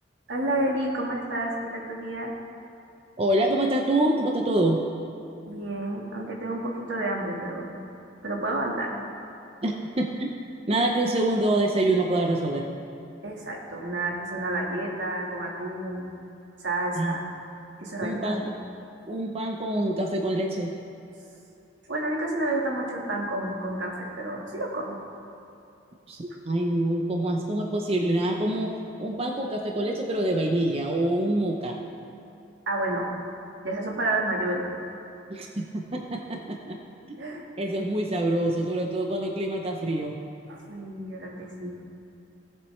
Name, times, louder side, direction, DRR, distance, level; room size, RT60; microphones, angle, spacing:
voice 1, 0.3-2.3 5.5-7.8 8.2-8.9 13.2-16.2 16.6-17.3 17.8-18.5 21.9-25.0 32.7-33.1 33.6-34.7 37.2-37.5 40.5-41.7, right 1 dB, 80° right, -1 dB, 1.7 m, -30 dB
voice 2, 3.2-4.8 9.6-10.3 10.7-12.7 17.0-17.1 18.0-18.6 19.1-20.7 26.1-31.8 35.3-36.8 37.1-37.2 37.6-40.2, right 1 dB, 35° right, 1 dB, 0.6 m, -26 dB
17.0 x 7.6 x 3.2 m, 2.7 s
head